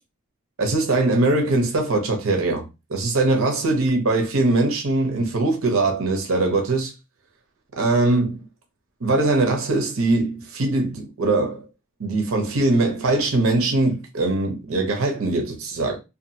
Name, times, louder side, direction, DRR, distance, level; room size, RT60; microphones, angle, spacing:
voice 1, 0.6-6.9 7.8-8.4 9.0-11.6 12.0-16.0, right 2 dB, 75° right, 0.7 m, -21 dB
2.7 x 2.4 x 2.6 m
head